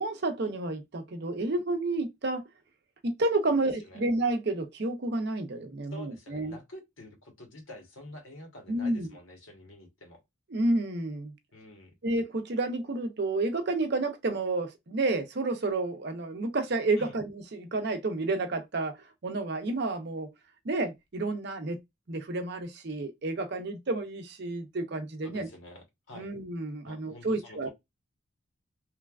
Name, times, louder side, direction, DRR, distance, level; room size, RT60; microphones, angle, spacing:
voice 1, 0.0-2.4 3.0-6.6 8.7-9.1 10.5-11.3 12.0-19.0 19.2-20.3 20.6-21.8 22.1-25.5 26.1-27.7, right 2 dB, 55° right, 0.6 m, -30 dB
voice 2, 3.5-4.0 5.9-10.2 11.5-11.9 17.0-17.2 25.2-26.3 26.8-27.7, left 1 dB, 75° left, 1.1 m, -48 dB
3.1 x 2.2 x 2.3 m
head